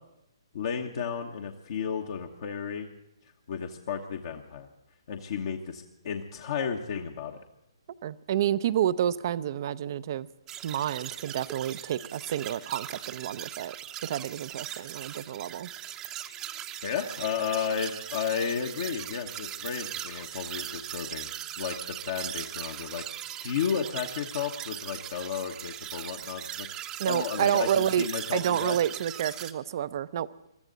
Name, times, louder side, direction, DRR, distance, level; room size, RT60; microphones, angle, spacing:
voice 1, 0.5-2.9 3.5-4.7 5.1-7.4 16.8-21.3 21.6-26.7 27.1-28.8, left 7 dB, 55° left, 2 dB, 1.2 m, -33 dB
voice 2, 8.0-10.3 10.6-13.8 14.0-15.7 27.0-30.3, right 10 dB, 45° right, 17 dB, 0.6 m, -29 dB
sound 1, 10.5-29.5, right 11 dB, 20° right, 0.8 m, -39 dB
23.0 x 13.5 x 4.0 m, 0.85 s
hypercardioid pair, 135°, 3 cm